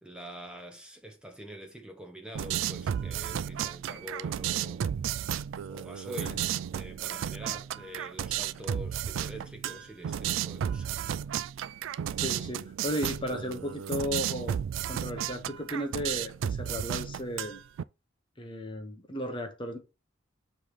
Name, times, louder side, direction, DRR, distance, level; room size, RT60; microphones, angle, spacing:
voice 1, 0.0-4.9 5.7-11.1, equal, 5° right, 0.9 m, -45 dB
sound 1, 2.3-17.8, right 9 dB, 75° right, 0.3 m, -33 dB
voice 2, 12.2-14.6 14.9-17.6 18.4-19.8, left 1 dB, 25° left, 0.9 m, -35 dB
7.4 x 3.2 x 5.0 m
head